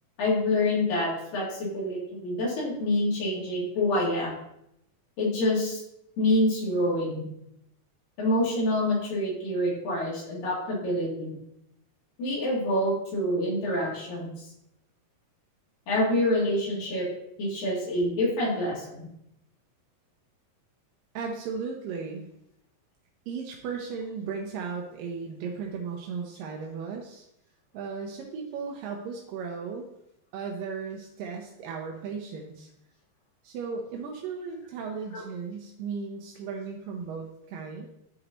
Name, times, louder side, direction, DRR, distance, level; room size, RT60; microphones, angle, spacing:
voice 1, 0.2-4.3 5.2-5.8 6.2-7.2 8.2-11.4 12.2-14.4 15.9-17.1 17.4-19.1 35.1-35.2, left 1 dB, 80° left, -5 dB, 4.5 m, -27 dB
voice 2, 21.1-22.3 23.3-27.3 27.7-29.9 30.3-32.7 33.4-37.9, right 5 dB, 85° right, 0 dB, 2.5 m, -36 dB
12.5 x 4.3 x 4.0 m, 0.79 s
omnidirectional pair, 3.9 m